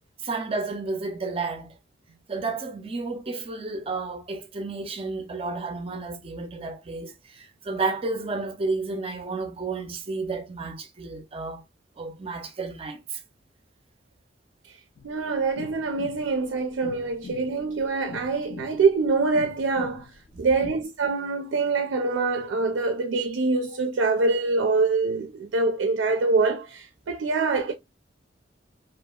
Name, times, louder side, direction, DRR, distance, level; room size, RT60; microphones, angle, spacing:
voice 1, 0.2-1.7 2.3-11.6 12.0-13.2 20.3-20.5, right 3 dB, 30° right, 0.5 m, -31 dB
sound 1, 15.0-20.8, left 4 dB, 55° left, 0.4 m, -43 dB
voice 2, 15.0-20.1 20.4-27.7, right 3 dB, 90° right, 0.4 m, -25 dB
2.7 x 2.4 x 2.2 m
head